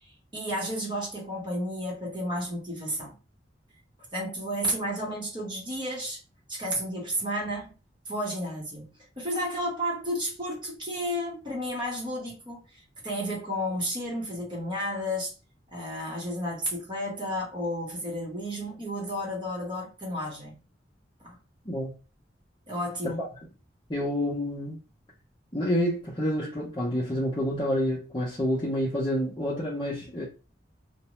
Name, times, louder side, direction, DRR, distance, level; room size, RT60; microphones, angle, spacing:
voice 1, 0.3-3.1 4.1-6.2 6.5-7.7 8.1-15.3 15.7-20.6 21.2-21.3 22.7-23.2, equal, 25° right, 0.8 m, -32 dB
voice 2, 23.9-24.8 25.5-30.2, equal, 25° left, 0.7 m, -28 dB
2.5 x 2.0 x 3.0 m
head